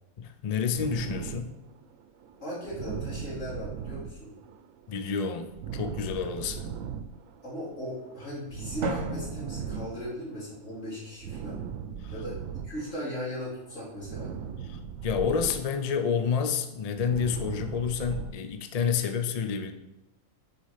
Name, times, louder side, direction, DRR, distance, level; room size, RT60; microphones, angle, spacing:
voice 1, 0.2-1.6 4.9-6.7 12.0-12.1 14.6-19.7, left 6 dB, 45° left, 7 dB, 0.5 m, -29 dB
sound 1, 0.7-13.3 13.6-18.3, right 7 dB, 85° right, 1.0 m, -39 dB
voice 2, 2.4-4.3 7.4-11.6 12.1-14.3, equal, 70° left, -6 dB, 3.0 m, -38 dB
Drum, 8.8-10.8, right 1 dB, 65° right, 1.3 m, -36 dB
6.1 x 4.9 x 5.7 m, 0.95 s
omnidirectional pair, 1.3 m